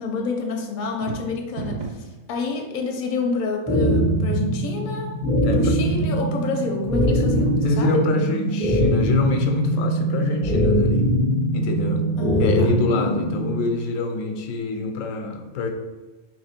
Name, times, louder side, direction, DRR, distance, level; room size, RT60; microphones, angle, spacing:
voice 1, 0.0-5.1 5.4-8.0 12.2-12.7, left 3 dB, 50° left, 2 dB, 0.6 m, -28 dB
sound 1, 0.8-2.2, right 6 dB, 80° right, 0.4 m, -32 dB
sound 2, 3.7-13.6, right 1 dB, ahead, 0.7 m, -22 dB
voice 2, 5.4-5.8 7.2-7.3 7.6-11.0 11.5-12.0 12.4-15.7, left 3 dB, 90° left, 4 dB, 1.0 m, -26 dB
3.0 x 2.9 x 4.3 m, 1.2 s
omnidirectional pair, 1.3 m